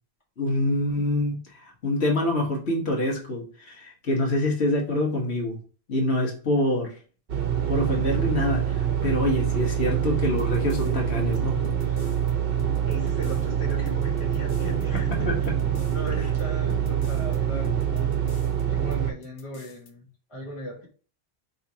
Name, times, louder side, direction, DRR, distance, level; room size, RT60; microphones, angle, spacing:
voice 1, 0.4-5.6 5.9-6.9 7.7-11.6 15.1-15.5, left 1 dB, 75° left, 1.5 m, -26 dB
sound 1, 7.3-19.1, right 9 dB, 60° right, 0.9 m, -25 dB
sound 2, 10.1-12.3 12.6-13.4 13.7-17.4 17.6-18.6 18.9-19.0 19.2-19.9, left 3 dB, 55° left, 0.8 m, -43 dB
voice 2, 12.9-15.5 15.9-18.1 18.7-20.9, equal, 30° left, 1.3 m, -38 dB
4.7 x 3.2 x 2.7 m
omnidirectional pair, 1.1 m